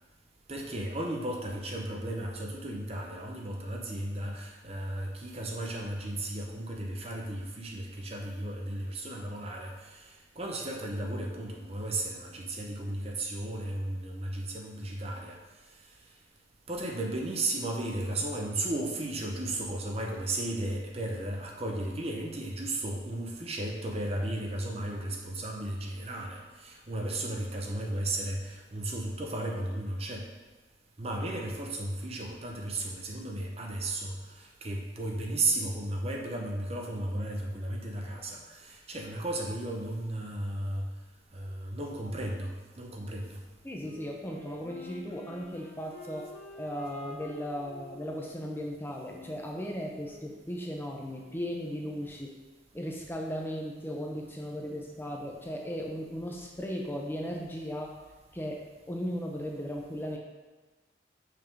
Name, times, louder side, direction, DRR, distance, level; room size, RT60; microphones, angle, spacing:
voice 1, 0.5-15.4 16.7-30.3 31.0-40.9 41.3-43.4, right 1 dB, 30° right, 1 dB, 0.7 m, -34 dB
voice 2, 43.6-46.3 46.6-52.3 52.7-57.9 58.3-58.6 58.9-60.2, equal, 10° left, -1 dB, 0.6 m, -36 dB
Wind instrument woodwind instrument, 43.8-50.5, left 2 dB, 55° left, 1.4 m, -49 dB
6.5 x 5.6 x 3.6 m, 1.2 s
head